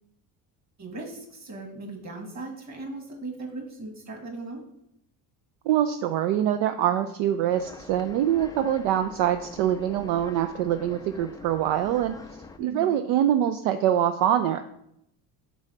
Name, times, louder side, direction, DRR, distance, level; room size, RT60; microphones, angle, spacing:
voice 1, 0.8-4.6 12.6-13.0, right 2 dB, 35° right, 3 dB, 1.9 m, -38 dB
voice 2, 5.7-12.2 12.6-14.6, right 11 dB, 65° right, 9 dB, 0.5 m, -24 dB
sound 1, 7.5-12.6, left 4 dB, 10° left, 0.3 m, -46 dB
4.7 x 4.1 x 5.4 m, 0.77 s
hypercardioid pair, 70°, 47 cm